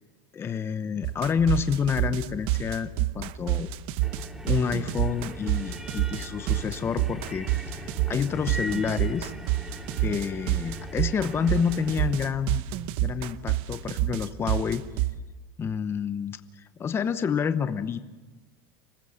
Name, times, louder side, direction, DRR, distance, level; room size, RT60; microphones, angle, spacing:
voice 1, 0.3-2.9 3.1-3.7 4.4-7.5 7.7-9.3 10.0-14.8 15.6-18.0, left 6 dB, 20° left, 11 dB, 0.9 m, -28 dB
sound 1, 1.0-3.8, left 6 dB, 50° left, 3.7 m, -45 dB
sound 2, 1.0-15.2, right 15 dB, 55° right, 0.9 m, -27 dB
sound 3, 4.0-12.3, right 1 dB, 5° right, 2.3 m, -41 dB
25.5 x 20.0 x 7.2 m, 1.2 s
supercardioid pair, 140°, 11 cm